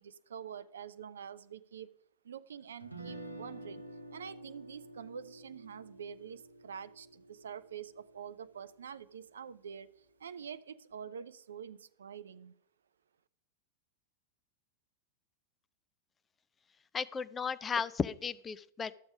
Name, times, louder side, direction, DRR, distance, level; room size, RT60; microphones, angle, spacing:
voice 1, 0.0-1.9 2.2-3.8 4.1-12.5, right 7 dB, 65° right, 14 dB, 0.3 m, -46 dB
Guitar, 2.8-8.9, right 1 dB, 85° right, 0.9 m, -50 dB
voice 2, 16.9-19.0, left 6 dB, 20° left, 15 dB, 0.4 m, -35 dB
12.0 x 7.0 x 4.9 m, 0.71 s
figure-of-eight pair, 90°, 0 cm